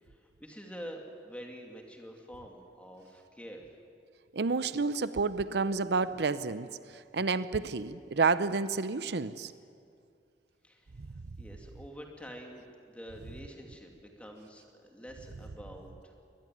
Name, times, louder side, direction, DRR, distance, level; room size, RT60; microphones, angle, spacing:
voice 1, 0.0-3.8 10.6-16.1, equal, 5° left, 2 dB, 2.7 m, -47 dB
voice 2, 4.3-9.5 11.0-11.1, right 4 dB, 70° right, 14 dB, 0.6 m, -30 dB
23.0 x 19.5 x 9.3 m, 2.4 s
head